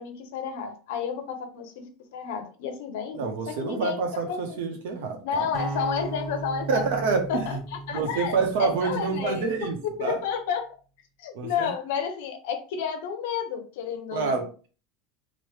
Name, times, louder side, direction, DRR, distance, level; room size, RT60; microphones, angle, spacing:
voice 1, 0.0-1.9 2.1-4.0 4.3-4.6 5.2-6.8 7.3-10.7 11.2-14.4, left 7 dB, 75° left, 0.7 m, -31 dB
voice 2, 3.1-5.5 6.7-7.6 7.9-10.2 11.3-11.7 14.1-14.5, right 5 dB, 75° right, 0.8 m, -27 dB
sound 1, 5.5-9.7, right 3 dB, 35° right, 0.5 m, -37 dB
3.1 x 2.2 x 3.2 m
supercardioid pair, 155°, 0 cm